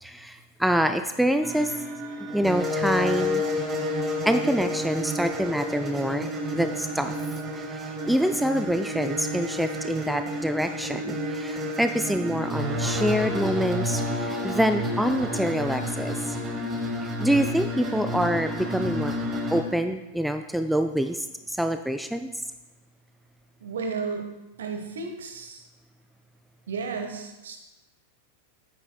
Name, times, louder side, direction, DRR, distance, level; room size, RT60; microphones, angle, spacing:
voice 1, 0.0-1.7 2.3-3.4 4.3-7.1 7.5-16.4 17.2-19.1 19.5-22.3, equal, ahead, 8 dB, 0.3 m, -26 dB
sound 1, 1.4-19.6, left 1 dB, 20° right, 1.1 m, -30 dB
voice 2, 23.6-24.3 24.6-25.6 26.7-27.6, right 5 dB, 65° right, 4 dB, 1.2 m, -33 dB
9.1 x 8.5 x 2.3 m, 1.0 s
figure-of-eight pair, 90°, 0 cm